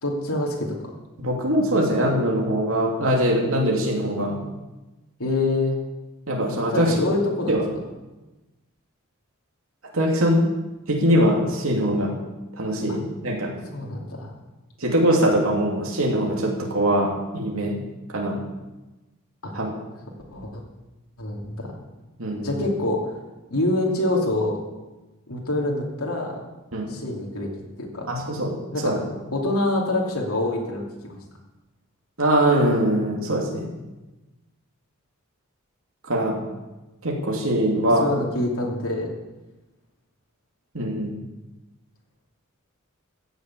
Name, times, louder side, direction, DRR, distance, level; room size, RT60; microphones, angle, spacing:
voice 1, 0.0-0.7 5.2-5.8 6.7-7.5 13.7-14.3 19.4-19.5 20.3-20.6 21.2-21.7 22.4-23.0 23.5-24.5 25.3-26.4 26.9-27.5 27.8-28.1 28.7-29.0 29.3-31.2 38.0-39.1, left 2 dB, 85° left, -2 dB, 2.9 m, -25 dB
voice 2, 1.2-4.4 6.3-6.9 7.5-7.6 9.9-10.4 10.9-12.1 12.6-13.5 14.8-17.7 18.1-18.4 19.5-19.7 22.2-22.6 26.7-26.9 28.1-28.6 28.8-29.0 32.2-33.7 36.1-36.4 37.0-38.1 40.7-41.1, equal, 70° right, -1 dB, 2.8 m, -22 dB
15.0 x 7.1 x 8.5 m, 1.1 s
head